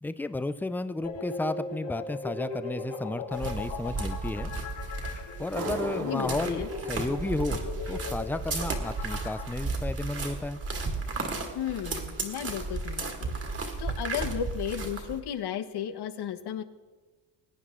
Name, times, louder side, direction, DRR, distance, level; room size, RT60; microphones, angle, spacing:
voice 1, 0.0-4.5 5.4-7.6 7.9-10.6, left 2 dB, 5° left, 12 dB, 0.3 m, -33 dB
sound 1, 1.0-9.5, left 4 dB, 80° left, 3.2 m, -38 dB
sound 2, 3.3-15.2, right 3 dB, 35° right, 1.8 m, -34 dB
sound 3, 5.6-8.9, right 2 dB, 60° right, 2.4 m, -39 dB
voice 2, 6.0-6.7 11.5-13.4 13.8-16.6, left 9 dB, 65° left, 11 dB, 1.0 m, -34 dB
21.0 x 9.5 x 3.7 m, 1.3 s
cardioid pair, 125°, 43 cm